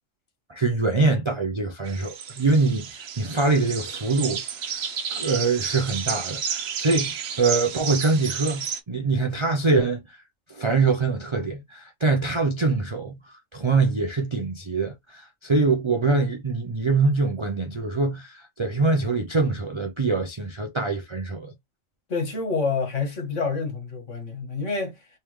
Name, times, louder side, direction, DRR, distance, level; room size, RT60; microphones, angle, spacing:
voice 1, 0.5-4.4 5.1-10.2 10.5-21.5, right 3 dB, 40° right, 0.4 m, -24 dB
sound 1, 1.8-8.8, right 7 dB, 60° right, 0.9 m, -32 dB
voice 2, 22.1-25.1, left 4 dB, 70° left, 1.7 m, -28 dB
3.3 x 3.3 x 3.1 m
omnidirectional pair, 1.4 m